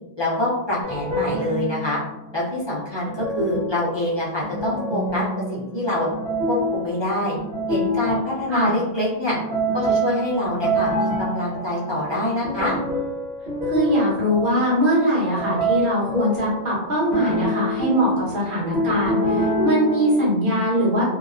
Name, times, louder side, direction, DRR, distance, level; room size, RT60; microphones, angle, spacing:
voice 1, 0.2-2.0 2.3-5.2 5.5-6.1 6.5-7.4 7.7-9.3 9.7-12.7, left 1 dB, 30° left, -7 dB, 0.5 m, -25 dB
sound 1, 0.8-2.2 3.0-8.8 9.3-16.7 17.1-20.3, equal, 80° right, 1.1 m, -27 dB
voice 2, 13.7-21.0, equal, 55° right, -6 dB, 1.1 m, -21 dB
2.8 x 2.1 x 2.4 m, 0.94 s
omnidirectional pair, 1.1 m